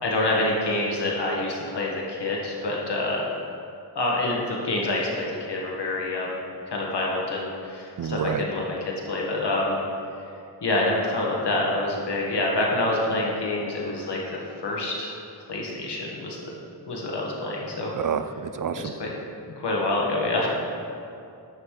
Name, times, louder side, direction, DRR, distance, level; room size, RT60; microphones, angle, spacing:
voice 1, 0.0-3.3 3.9-6.4 6.7-9.8 10.6-14.2 14.6-15.1 15.5-16.4 16.9-17.9 18.7-19.1 19.6-20.5, left 2 dB, 85° left, -3 dB, 1.6 m, -27 dB
voice 2, 8.0-8.4 17.9-18.9, right 7 dB, 50° right, 11 dB, 0.4 m, -28 dB
10.5 x 7.6 x 3.2 m, 2.6 s
wide cardioid pair, 85°, 40 cm